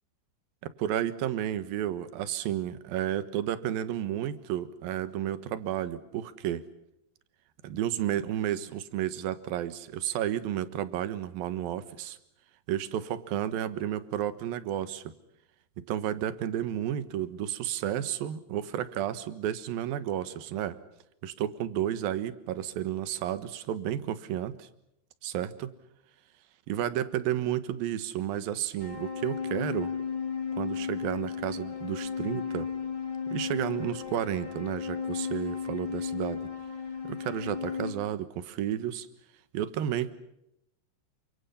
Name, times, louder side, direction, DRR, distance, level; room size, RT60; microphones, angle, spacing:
voice 1, 0.6-6.6 7.6-12.2 12.7-15.0 15.8-20.8 21.2-24.7 25.2-25.7 26.7-29.9 30.6-32.7 33.3-36.5 37.0-39.1 39.5-40.1, right 11 dB, 65° right, 13 dB, 2.6 m, -32 dB
sound 1, 28.8-37.9, left 6 dB, 60° left, 0.4 m, -34 dB
30.0 x 26.0 x 5.7 m, 0.81 s
omnidirectional pair, 5.4 m